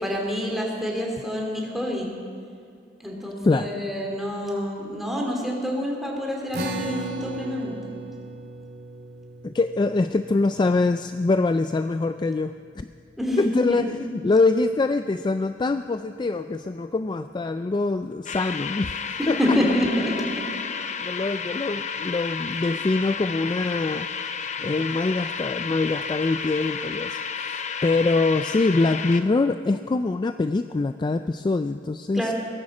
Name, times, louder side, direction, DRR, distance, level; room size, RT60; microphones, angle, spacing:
voice 1, 0.0-2.1 3.0-7.7 13.2-13.8 19.2-20.1 32.1-32.3, left 1 dB, ahead, -1 dB, 2.7 m, -27 dB
voice 2, 3.4-3.8 9.4-12.9 13.4-19.6 21.0-24.1 24.6-32.3, left 3 dB, 25° left, 10 dB, 0.3 m, -24 dB
sound 1, 6.5-13.2, right 3 dB, 60° right, 2.2 m, -37 dB
sound 2, 18.3-29.2, left 6 dB, 40° left, 0.7 m, -32 dB
17.5 x 11.5 x 7.3 m, 2.2 s
head